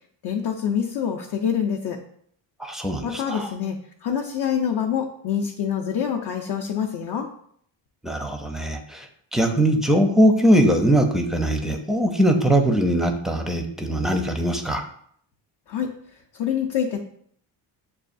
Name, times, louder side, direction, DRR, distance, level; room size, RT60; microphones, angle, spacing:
voice 1, 0.2-2.0 3.0-7.3 15.7-15.9 16.3-17.0, left 8 dB, 60° left, 1 dB, 0.6 m, -26 dB
voice 2, 2.6-3.5 8.0-9.1 9.3-14.8, right 1 dB, ahead, 4 dB, 0.5 m, -21 dB
6.7 x 2.3 x 2.5 m, 0.64 s
cardioid pair, 75°, 46 cm